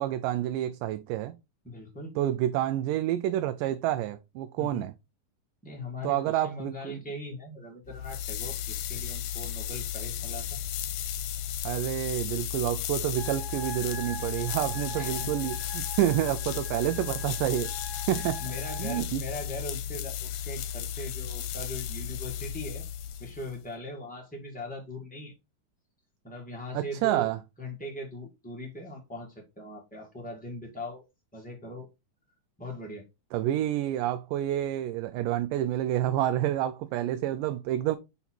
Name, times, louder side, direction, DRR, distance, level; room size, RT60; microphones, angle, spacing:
voice 1, 0.0-1.4 2.2-4.9 6.0-7.0 11.6-17.7 18.1-18.4 18.8-19.2 26.7-27.4 33.3-38.0, right 13 dB, 85° right, 2.1 m, -28 dB
voice 2, 1.6-2.2 4.6-4.8 5.6-10.6 15.0-15.3 18.1-22.8 23.2-25.3 26.2-27.3 27.6-31.0 31.3-31.9 32.6-33.0, left 1 dB, 10° left, 0.4 m, -40 dB
sound 1, 7.9-23.6, left 10 dB, 75° left, 2.0 m, -34 dB
sound 2, 13.2-19.0, equal, 65° right, 0.7 m, -44 dB
5.8 x 4.0 x 4.4 m
omnidirectional pair, 3.8 m